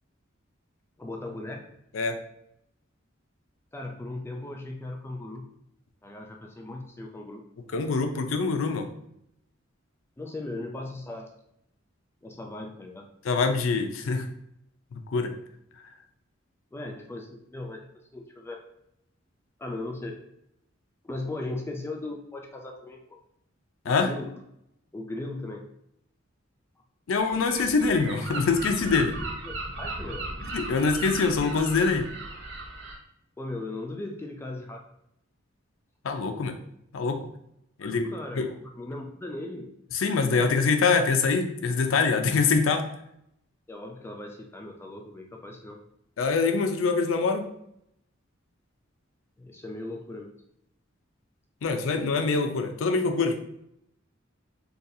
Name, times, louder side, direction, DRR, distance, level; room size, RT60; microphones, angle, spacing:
voice 1, 1.0-1.6 3.7-5.5 6.0-7.4 10.2-11.3 12.2-13.1 16.7-18.6 19.6-20.2 21.0-23.0 23.9-24.4 24.9-25.6 29.4-30.3 33.4-34.8 37.8-39.7 43.7-45.8 49.4-50.3, left 2 dB, 10° left, 1 dB, 0.3 m, -37 dB
voice 2, 7.7-8.9 13.2-14.3 14.9-15.3 23.9-24.1 27.1-29.2 30.5-32.1 36.0-36.6 36.9-37.3 37.8-38.1 38.4-38.5 39.9-42.9 46.2-47.5 51.6-53.4, left 4 dB, 90° left, 6 dB, 0.4 m, -24 dB
Gull seagull, 27.2-33.0, right 2 dB, 60° right, 0.6 m, -37 dB
3.9 x 2.3 x 2.6 m, 0.77 s
head